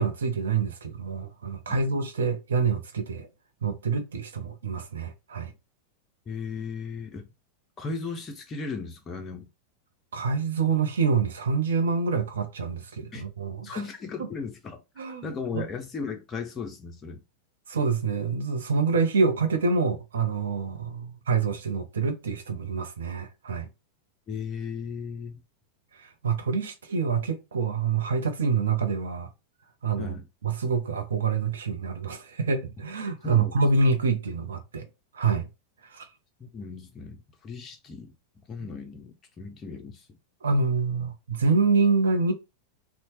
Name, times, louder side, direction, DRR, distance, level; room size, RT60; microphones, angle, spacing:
voice 1, 0.0-3.3 3.6-5.5 10.1-13.8 15.0-15.7 17.7-23.7 25.9-29.3 29.8-30.2 30.4-34.8 35.1-35.5 35.8-36.1 40.4-42.3, right 4 dB, 65° right, 0.5 m, -26 dB
voice 2, 6.3-7.2 7.8-9.5 13.1-13.2 13.6-17.2 24.3-25.4 30.0-30.3 33.2-33.5 36.5-38.1 38.5-40.1, left 5 dB, 25° left, 0.5 m, -36 dB
2.7 x 2.0 x 3.0 m
figure-of-eight pair, 90°, 0 cm